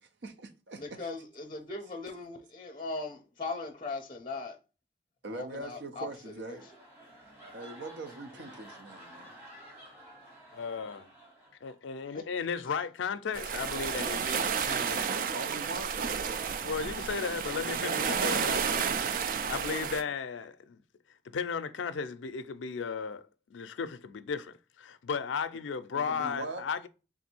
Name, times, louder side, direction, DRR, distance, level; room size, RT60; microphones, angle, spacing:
voice 1, 0.0-1.0 5.2-6.7 7.5-9.3 15.1-16.8 17.5-18.1 19.7-20.0 25.9-26.6, right 2 dB, 75° right, 0.6 m, -42 dB
voice 2, 0.8-4.6 5.3-6.6, left 3 dB, 25° left, 0.5 m, -39 dB
sound 1, 6.1-12.0 12.4-12.7, right 1 dB, 10° right, 1.4 m, -52 dB
voice 3, 10.5-11.1 11.6-15.2 16.6-19.0 19.5-20.8 21.3-26.9, left 6 dB, 90° left, 0.4 m, -35 dB
sound 2, 13.3-20.0, right 6 dB, 45° right, 0.3 m, -31 dB
3.5 x 2.6 x 4.3 m
head